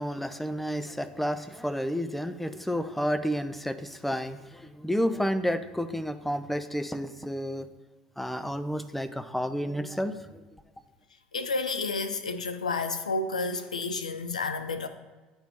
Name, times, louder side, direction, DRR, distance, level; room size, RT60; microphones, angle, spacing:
voice 1, 0.0-7.7 8.2-10.4, equal, 5° left, 11 dB, 0.4 m, -31 dB
voice 2, 11.3-14.9, left 3 dB, 90° left, 9 dB, 0.4 m, -30 dB
9.5 x 4.3 x 2.8 m, 1.2 s
hypercardioid pair, 65°, 4 cm